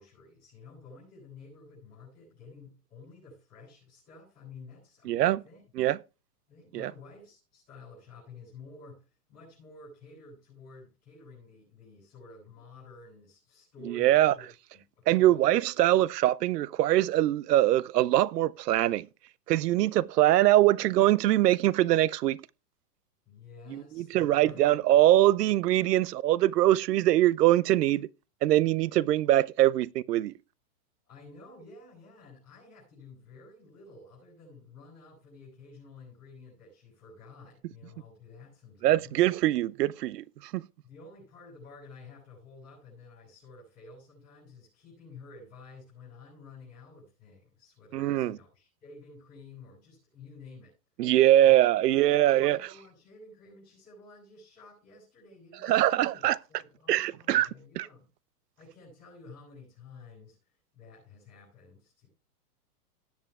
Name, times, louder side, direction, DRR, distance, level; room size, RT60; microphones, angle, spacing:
voice 1, 0.0-5.6 6.5-15.7 23.3-24.8 31.1-39.2 40.8-50.7 51.4-58.1 58.6-62.1, left 3 dB, 15° left, 7.5 m, -51 dB
voice 2, 5.1-5.4 5.8-6.0 6.7-6.9 13.9-14.3 15.1-19.1 19.5-22.4 23.7-28.1 28.4-30.3 38.8-40.2 40.5-40.7 47.9-48.4 51.0-52.6 55.6-56.4 56.9-57.5 57.8-57.9, right 14 dB, 85° right, 0.6 m, -23 dB
19.0 x 8.0 x 2.4 m
supercardioid pair, 175°, 46 cm